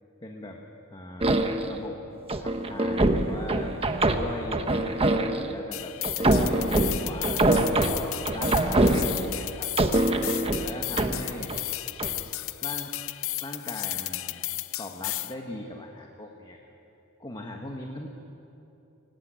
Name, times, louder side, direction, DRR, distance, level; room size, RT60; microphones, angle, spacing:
voice 1, 0.2-2.0 2.4-3.7 4.2-9.7 10.6-11.6 12.6-13.0 13.4-14.4 14.8-16.7 17.2-18.1, left 1 dB, 20° left, 1 dB, 1.5 m, -40 dB
sound 1, 1.2-1.8 2.3-5.5 6.0-9.4 9.8-11.6 12.0-12.2, right 2 dB, 25° right, 1.2 m, -24 dB
sound 2, 5.7-15.3, left 16 dB, 65° left, 0.6 m, -34 dB
23.0 x 18.5 x 9.0 m, 2.9 s
head